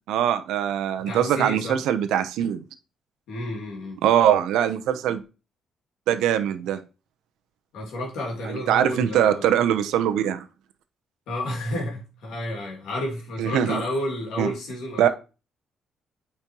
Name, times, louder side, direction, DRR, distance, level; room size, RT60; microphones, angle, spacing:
voice 1, 0.1-2.6 4.0-5.2 6.1-6.8 8.4-10.4 13.4-13.8 14.4-14.5 15.0-15.1, right 10 dB, 90° right, 0.7 m, -22 dB
voice 2, 1.1-1.8 3.3-4.0 7.7-9.5 11.3-15.1, left 1 dB, 85° left, 2.3 m, -31 dB
8.8 x 4.4 x 3.0 m
cardioid pair, 90°, 0 cm